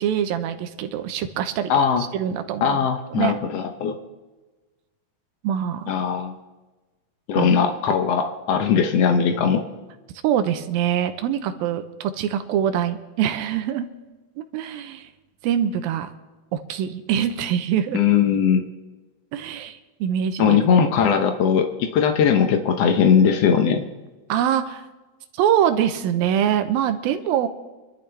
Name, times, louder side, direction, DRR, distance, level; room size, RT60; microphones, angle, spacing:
voice 1, 0.0-1.7 2.1-2.8 3.1-3.4 5.4-6.0 7.3-7.5 10.2-13.9 14.4-15.1 15.4-16.1 16.5-18.0 19.3-20.6 24.3-24.9 25.4-27.5, right 9 dB, 85° right, 9 dB, 2.7 m, -24 dB
voice 2, 1.7-2.0 2.6-4.0 5.9-6.3 7.3-9.6 17.9-18.6 20.4-23.8, left 7 dB, 85° left, 5 dB, 1.4 m, -19 dB
25.5 x 12.5 x 3.4 m, 1.2 s
omnidirectional pair, 4.1 m